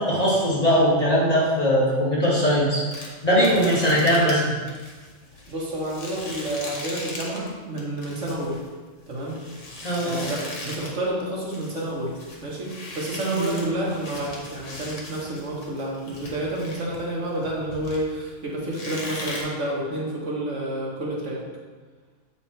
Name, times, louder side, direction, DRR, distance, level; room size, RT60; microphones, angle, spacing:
voice 1, 0.0-2.8 3.2-4.6 9.8-10.2 13.3-13.7, equal, 35° left, -8 dB, 2.1 m, -20 dB
sound 1, 2.9-7.5 7.8-11.0 11.3-18.3 18.7-19.4, left 1 dB, 85° left, 1.6 m, -38 dB
voice 2, 5.5-8.6 9.1-9.4 10.0-12.2 12.4-21.4, right 1 dB, 90° right, -3 dB, 1.7 m, -29 dB
7.5 x 4.1 x 4.4 m, 1.4 s
omnidirectional pair, 1.2 m